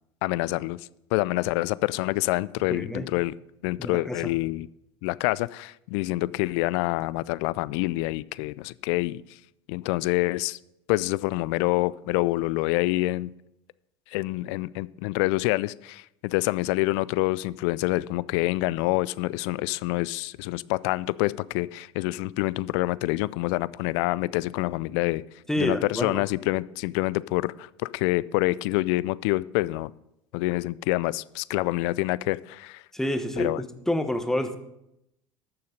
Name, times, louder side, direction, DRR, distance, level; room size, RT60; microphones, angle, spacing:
voice 1, 0.2-0.8 1.1-3.3 3.6-4.7 5.0-9.2 9.7-10.6 10.9-13.3 14.1-25.2 25.6-29.9 30.3-32.8 33.4-33.6, left 20 dB, 65° left, 20 dB, 0.4 m, -27 dB
voice 2, 2.7-3.1 3.8-4.3 25.5-26.2 32.9-34.6, left 1 dB, 5° left, 8 dB, 1.1 m, -28 dB
11.5 x 6.8 x 5.2 m, 0.84 s
hypercardioid pair, 80°, 15 cm